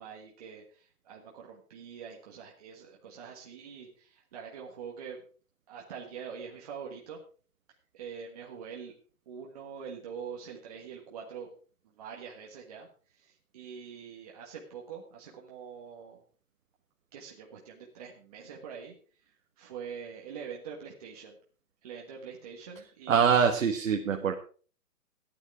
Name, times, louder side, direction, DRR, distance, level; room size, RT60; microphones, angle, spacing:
voice 1, 0.0-5.2 5.7-7.2 7.9-8.9 9.2-11.5 11.8-12.9 13.1-16.2 17.1-18.9 19.6-21.4 21.8-23.4, right 7 dB, 25° right, -2 dB, 1.5 m, -44 dB
voice 2, 23.1-24.3, right 7 dB, 55° right, 3 dB, 1.5 m, -24 dB
14.5 x 9.7 x 4.7 m, 0.40 s
hypercardioid pair, 175°, 47 cm